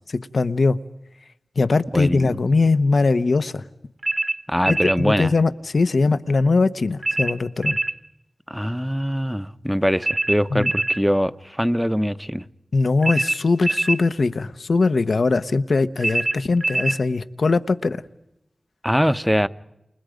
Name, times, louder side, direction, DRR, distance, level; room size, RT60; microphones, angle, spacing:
voice 1, 0.3-0.8 1.6-3.6 4.7-7.8 10.5-10.7 12.7-18.0, left 3 dB, 70° left, 1.0 m, -20 dB
voice 2, 1.9-2.3 4.5-5.3 8.5-12.4 18.8-19.5, equal, ahead, 0.9 m, -22 dB
sound 1, 4.0-5.0 7.0-8.0 10.0-11.0 13.0-14.0 16.0-17.0, right 2 dB, 45° right, 1.7 m, -24 dB
29.5 x 28.5 x 5.2 m
cardioid pair, 45°, 0 cm